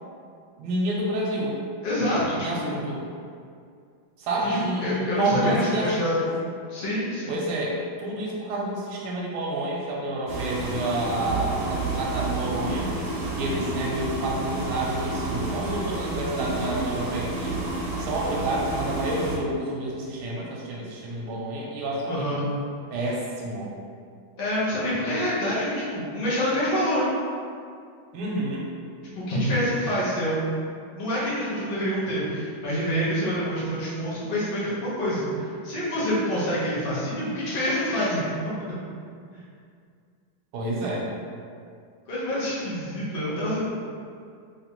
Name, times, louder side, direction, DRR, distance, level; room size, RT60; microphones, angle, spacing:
voice 1, 0.6-1.5 2.4-3.0 4.2-6.3 7.3-12.9 13.3-17.6 18.0-22.4 22.9-23.7 28.1-28.7 40.5-41.1, right 1 dB, 85° right, -4 dB, 1.5 m, -29 dB
voice 2, 1.8-2.8 4.4-6.2 6.7-7.4 22.1-22.5 24.4-27.1 29.1-30.4 30.9-38.2 38.7-38.8 39.3-39.4 42.1-43.6, equal, 70° left, -9 dB, 0.5 m, -27 dB
sound 1, 10.3-19.4, right 2 dB, 65° right, 0.9 m, -30 dB
3.3 x 3.0 x 2.8 m, 2.3 s
omnidirectional pair, 2.3 m